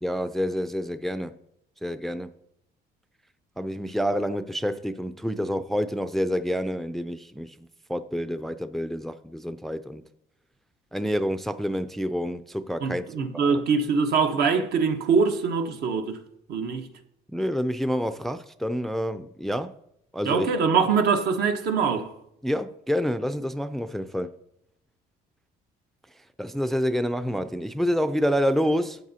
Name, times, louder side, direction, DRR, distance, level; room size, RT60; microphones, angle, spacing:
voice 1, 0.0-1.3 1.8-2.3 3.6-7.5 7.9-10.0 10.9-13.1 13.3-13.6 17.3-19.7 20.1-20.5 22.4-24.3 26.4-29.0, equal, ahead, 0.4 m, -28 dB
voice 2, 12.8-16.2 16.5-16.9 20.2-22.1, right 5 dB, 70° right, 1.1 m, -23 dB
12.5 x 8.0 x 2.8 m
cardioid pair, 110°, 17 cm